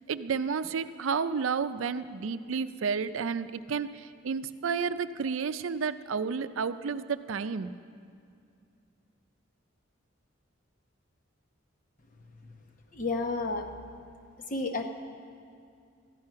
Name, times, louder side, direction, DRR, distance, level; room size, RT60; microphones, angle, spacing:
voice 1, 0.1-7.7, right 5 dB, 85° right, 12 dB, 0.5 m, -31 dB
voice 2, 12.9-13.7 14.5-14.8, left 3 dB, 40° left, 4 dB, 0.9 m, -31 dB
13.5 x 10.5 x 5.7 m, 2.3 s
head